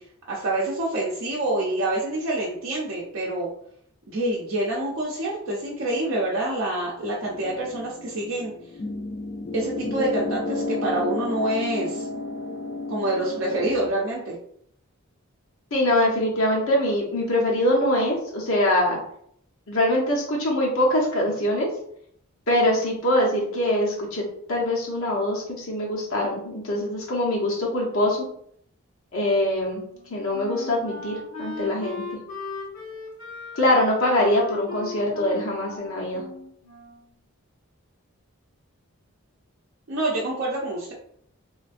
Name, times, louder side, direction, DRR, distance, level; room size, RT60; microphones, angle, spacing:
voice 1, 0.3-3.5 4.1-8.5 9.5-12.1 12.9-14.4 39.9-40.9, right 1 dB, 60° right, -5 dB, 0.5 m, -27 dB
sound 1, 7.2-13.9, left 2 dB, 35° left, 0.3 m, -32 dB
voice 2, 15.7-19.0 19.7-21.7 22.5-28.3 29.1-29.8 30.1-32.0 33.5-36.2, left 1 dB, 70° left, -3 dB, 0.7 m, -23 dB
Wind instrument woodwind instrument, 29.9-37.2, left 3 dB, 90° left, 0.9 m, -37 dB
3.1 x 2.4 x 2.4 m, 0.68 s
head